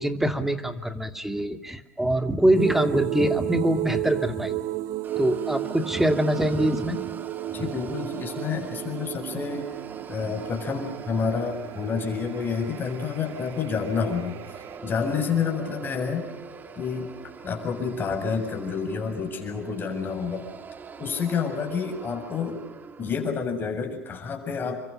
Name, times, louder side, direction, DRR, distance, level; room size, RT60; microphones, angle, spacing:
voice 1, 0.0-4.6 5.2-7.0 7.6-7.7, right 1 dB, 5° right, 8 dB, 2.7 m, -24 dB
sound 1, 2.5-14.8, right 14 dB, 45° right, 2.0 m, -33 dB
sound 2, 5.0-23.3, right 5 dB, 20° right, 2.3 m, -43 dB
voice 2, 7.5-9.6 10.1-14.3 14.8-16.3 16.8-17.1 17.4-20.5 21.0-22.6 23.0-24.8, left 6 dB, 25° left, 4 dB, 7.4 m, -29 dB
29.5 x 24.5 x 6.6 m, 0.83 s
hypercardioid pair, 90°, 8 cm